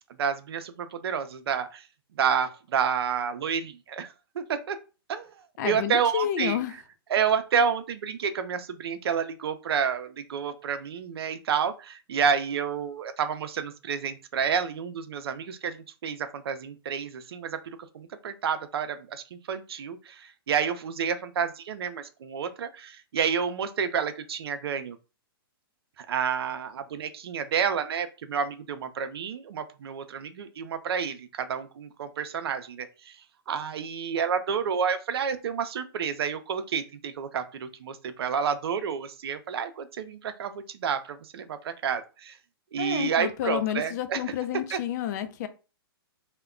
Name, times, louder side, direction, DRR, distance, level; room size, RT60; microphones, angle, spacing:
voice 1, 0.2-1.9 2.2-4.8 5.1-5.4 5.6-6.6 7.1-25.0 26.0-33.2 33.5-42.4 42.7-44.2 44.7-44.8, right 7 dB, 75° right, 10 dB, 0.5 m, -29 dB
voice 2, 5.6-6.7 42.8-45.5, left 10 dB, 45° left, 10 dB, 0.4 m, -30 dB
2.1 x 2.1 x 3.6 m, 0.32 s
hypercardioid pair, 145°, 13 cm